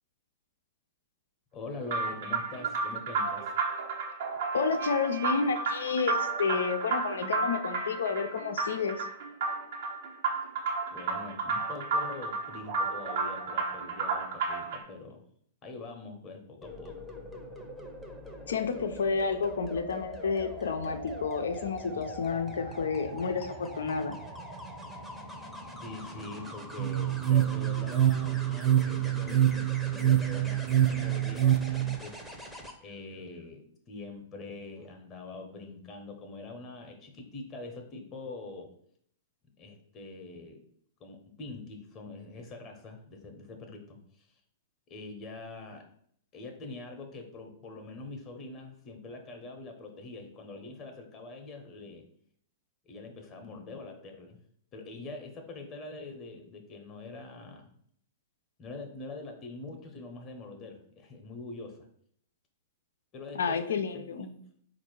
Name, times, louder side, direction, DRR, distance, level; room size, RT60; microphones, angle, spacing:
voice 1, 1.5-3.5 10.9-15.2 15.6-17.1 25.8-32.2 32.8-38.7 39.6-40.6 41.0-44.3 44.9-45.9 46.3-52.1 52.8-54.4 54.7-57.7 58.6-61.9 63.1-64.3, left 3 dB, 30° left, 4 dB, 0.9 m, -44 dB
sound 1, 1.9-14.8, right 4 dB, 65° right, 1.2 m, -32 dB
voice 2, 4.5-9.1 18.5-24.2 63.3-64.3, left 5 dB, 75° left, 8 dB, 0.5 m, -30 dB
sound 2, 16.6-32.7 34.6-34.9, equal, ahead, 0.8 m, -43 dB
sound 3, 26.8-32.0, right 11 dB, 40° right, 0.4 m, -26 dB
4.3 x 2.6 x 4.5 m, 0.63 s
hypercardioid pair, 110°, 0 cm